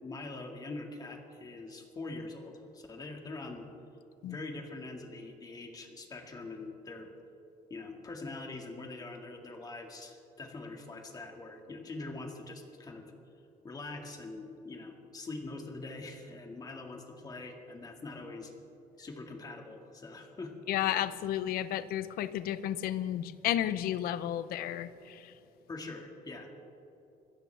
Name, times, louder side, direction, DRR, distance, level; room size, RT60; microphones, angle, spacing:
voice 1, 0.0-3.7 4.2-7.1 7.7-13.1 13.6-18.5 19.0-20.5 25.7-26.5, left 2 dB, 25° left, 3 dB, 1.9 m, -43 dB
voice 2, 20.7-25.4, left 12 dB, 85° left, 14 dB, 0.7 m, -32 dB
25.5 x 15.0 x 3.4 m, 2.9 s
cardioid pair, 155°, 15 cm